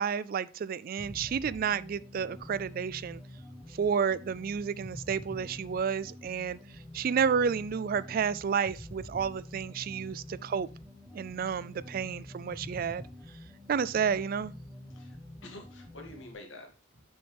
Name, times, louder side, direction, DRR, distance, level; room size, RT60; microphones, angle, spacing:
voice 1, 0.0-3.2 3.8-6.6 6.9-10.7 11.1-13.0 13.7-14.5, right 6 dB, 50° right, 0.3 m, -30 dB
sound 1, 1.0-16.3, left 1 dB, 5° left, 1.2 m, -47 dB
voice 2, 14.9-17.0, left 2 dB, 80° left, 2.2 m, -49 dB
7.0 x 6.4 x 3.4 m
head